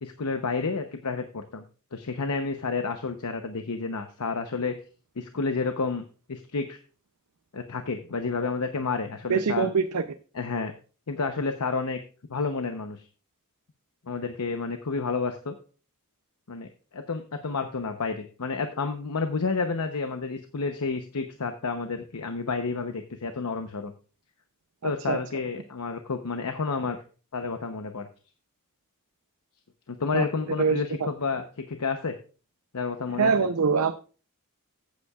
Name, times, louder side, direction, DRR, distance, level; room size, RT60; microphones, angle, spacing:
voice 1, 0.0-1.6 1.9-4.7 5.2-6.8 7.5-9.7 10.3-10.7 11.1-12.0 12.3-13.1 14.1-15.5 16.5-23.9 24.8-27.0 27.3-28.1 29.9-32.2 32.7-33.3, left 4 dB, 80° left, 7 dB, 0.8 m, -30 dB
voice 2, 9.3-10.0 24.8-25.2 30.1-30.3 30.6-30.8 33.2-33.9, right 5 dB, 80° right, 8 dB, 0.6 m, -23 dB
14.5 x 8.4 x 2.4 m, 0.37 s
head